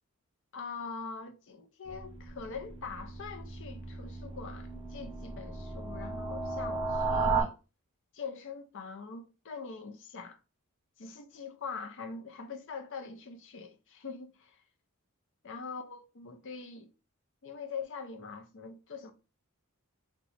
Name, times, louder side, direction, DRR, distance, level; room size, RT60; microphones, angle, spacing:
voice 1, 0.5-7.6 8.1-10.4 11.0-14.6 15.4-16.9 17.4-19.1, left 5 dB, 55° left, 0.6 m, -43 dB
sound 1, 1.9-7.4, right 4 dB, 25° right, 0.7 m, -35 dB
2.9 x 2.3 x 4.1 m
head